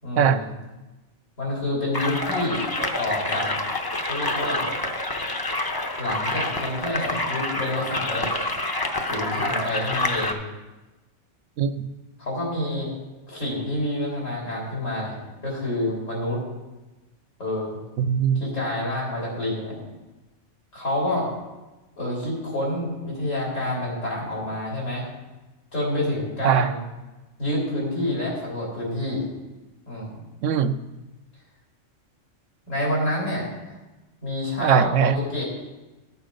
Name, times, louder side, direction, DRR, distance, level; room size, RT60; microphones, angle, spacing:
voice 1, 0.0-0.5 1.4-2.7 3.0-3.6 4.0-4.7 6.0-8.3 9.1-10.4 12.2-12.9 13.3-15.2 15.4-16.4 17.4-17.8 18.4-19.8 20.7-21.3 22.0-25.1 25.7-26.8 27.4-29.3 29.9-30.2 32.7-33.5 34.2-35.4, left 1 dB, 85° left, -4 dB, 4.1 m, -28 dB
sound 1, 1.9-10.3, left 2 dB, 25° left, 0.6 m, -27 dB
voice 2, 11.6-11.9 18.0-18.4 26.4-26.7 30.4-30.8 34.6-35.2, right 8 dB, 75° right, 10 dB, 1.0 m, -20 dB
13.0 x 6.9 x 5.1 m, 1.1 s
omnidirectional pair, 1.3 m